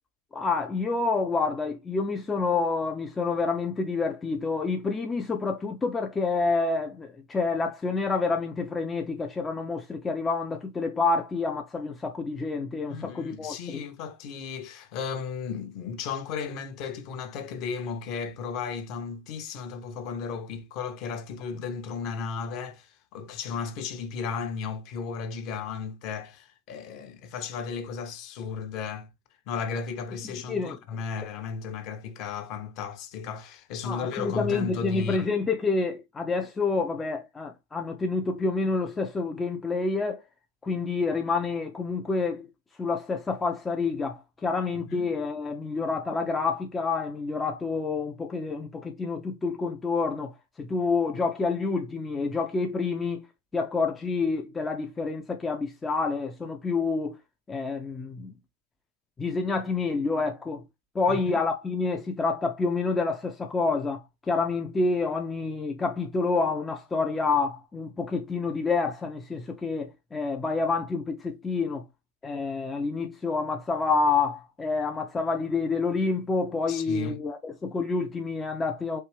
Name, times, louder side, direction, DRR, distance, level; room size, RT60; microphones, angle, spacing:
voice 1, 0.3-13.8 30.5-30.8 33.8-40.2 40.6-42.5 42.8-53.3 53.5-57.2 57.5-58.3 59.2-60.6 60.9-71.8 72.2-79.0, left 4 dB, 15° left, 0.4 m, -28 dB
voice 2, 12.9-29.1 29.5-35.3 44.9-45.1 61.1-61.4 76.7-77.2, left 5 dB, 40° left, 0.8 m, -35 dB
4.4 x 2.5 x 3.3 m
figure-of-eight pair, 90°, 0 cm